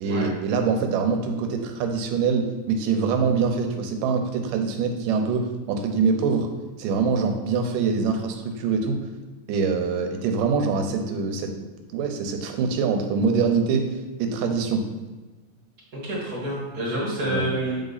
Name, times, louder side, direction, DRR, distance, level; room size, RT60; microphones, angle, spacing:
voice 1, 0.0-6.5 6.8-9.0 9.5-11.5 11.9-13.9 14.2-14.8 17.3-17.5, right 5 dB, 80° right, 5 dB, 2.3 m, -24 dB
voice 2, 15.9-17.8, right 1 dB, 35° right, -5 dB, 1.7 m, -28 dB
7.8 x 3.9 x 4.0 m, 1.2 s
omnidirectional pair, 3.9 m